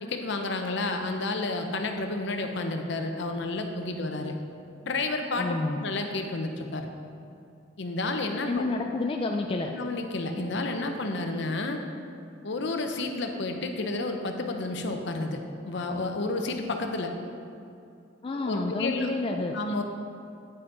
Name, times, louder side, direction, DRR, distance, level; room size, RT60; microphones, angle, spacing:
voice 1, 0.0-4.4 4.8-6.9 7.8-8.8 9.7-11.8 12.4-17.1 18.4-19.1 19.5-19.8, left 2 dB, 65° left, 5 dB, 0.7 m, -31 dB
voice 2, 5.4-5.8 8.5-9.7 18.2-19.6, left 2 dB, 30° left, 2 dB, 0.3 m, -29 dB
9.3 x 5.6 x 3.9 m, 2.6 s
head